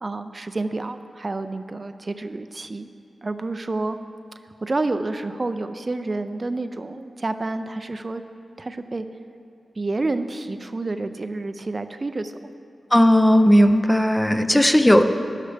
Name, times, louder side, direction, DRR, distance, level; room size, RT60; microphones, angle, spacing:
voice 1, 0.0-2.9 3.2-4.0 4.6-8.2 8.6-9.0 9.8-12.5, right 2 dB, 40° right, 9 dB, 0.4 m, -29 dB
voice 2, 12.9-15.0, equal, 10° left, 8 dB, 0.5 m, -16 dB
13.0 x 11.5 x 3.4 m, 2.7 s
wide cardioid pair, 75°, 0 cm